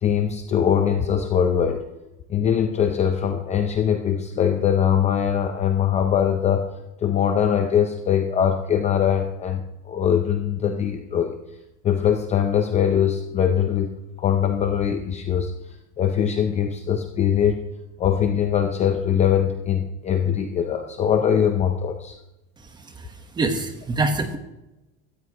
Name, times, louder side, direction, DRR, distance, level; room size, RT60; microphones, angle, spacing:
voice 1, 0.0-1.9 2.3-6.7 7.0-11.4 11.8-15.5 16.0-17.6 18.0-22.2, left 8 dB, 20° left, 6 dB, 0.5 m, -22 dB
voice 2, 22.6-24.4, right 3 dB, 10° right, 6 dB, 1.1 m, -26 dB
17.0 x 14.0 x 2.9 m, 0.97 s
cardioid pair, 170°, 35 cm